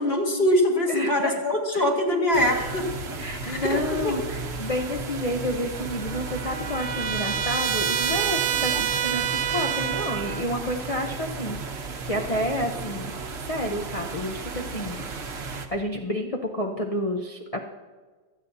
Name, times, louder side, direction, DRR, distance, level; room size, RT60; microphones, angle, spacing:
voice 1, 0.0-3.2 3.4-4.2, left 1 dB, 35° left, 0 dB, 1.8 m, -23 dB
voice 2, 0.9-1.4 1.7-1.8 3.1-13.1 13.4-15.0 15.3-17.6, left 1 dB, 65° left, 2 dB, 0.3 m, -30 dB
sound 1, 2.3-15.7, right 4 dB, 45° right, 1.0 m, -34 dB
Trumpet, 5.7-10.5, right 9 dB, 75° right, 0.7 m, -28 dB
24.0 x 8.3 x 2.7 m, 1.4 s
omnidirectional pair, 1.8 m